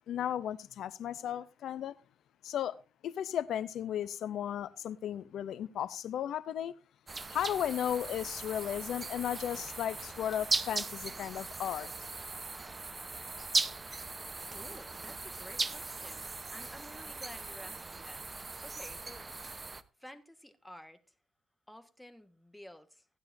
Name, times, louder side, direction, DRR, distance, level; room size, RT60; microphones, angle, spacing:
voice 1, 0.1-1.9 2.4-2.8 3.0-6.8 7.3-11.9, left 10 dB, 75° left, 0.5 m, -35 dB
sound 1, 7.1-19.8, right 3 dB, 25° right, 0.8 m, -38 dB
voice 2, 14.5-19.3 20.0-21.1 21.7-23.1, left 1 dB, 5° left, 1.4 m, -52 dB
15.5 x 12.0 x 2.6 m
cardioid pair, 90°, 0 cm